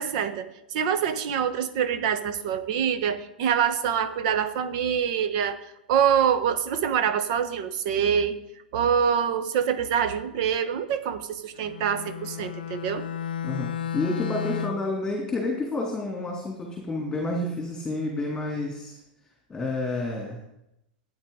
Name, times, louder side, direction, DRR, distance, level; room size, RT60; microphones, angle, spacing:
voice 1, 0.0-5.6 5.9-8.4 8.7-13.1, right 8 dB, 50° right, 11 dB, 1.1 m, -25 dB
Bowed string instrument, 11.6-15.0, left 8 dB, 70° left, 0.5 m, -33 dB
voice 2, 13.4-19.0 19.5-20.4, left 2 dB, 10° left, -1 dB, 2.7 m, -30 dB
15.0 x 9.0 x 3.8 m, 0.83 s
figure-of-eight pair, 95°, 5 cm